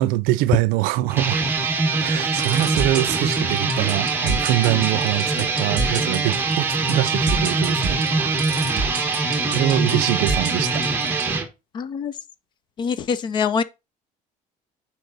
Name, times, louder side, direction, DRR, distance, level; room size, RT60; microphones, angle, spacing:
voice 1, 0.0-1.4 2.0-8.0 9.2-10.8, right 16 dB, 80° right, 0.5 m, -24 dB
sound 1, 1.1-11.5, right 3 dB, 15° right, 1.2 m, -23 dB
sound 2, 2.1-11.2, right 4 dB, 30° right, 1.9 m, -27 dB
voice 2, 11.7-12.1 12.8-13.6, left 6 dB, 30° left, 0.5 m, -24 dB
6.5 x 4.9 x 4.0 m
cardioid pair, 170°, 15 cm